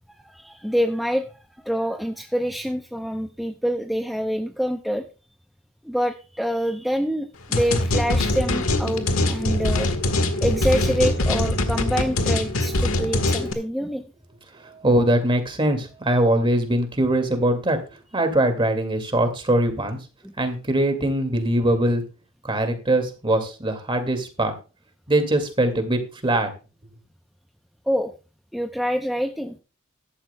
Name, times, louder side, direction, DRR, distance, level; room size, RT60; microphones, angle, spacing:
voice 1, 0.1-5.1 5.8-9.9 10.4-14.0 20.2-20.3 27.9-28.1 28.5-29.6, equal, ahead, 4 dB, 0.6 m, -26 dB
sound 1, 7.5-13.5, left 2 dB, 80° left, 1.5 m, -23 dB
voice 2, 14.6-17.8 18.1-20.0 20.4-22.0 22.4-24.5 25.1-26.5, right 1 dB, 25° right, 7 dB, 2.1 m, -22 dB
14.5 x 12.0 x 2.2 m, 0.32 s
head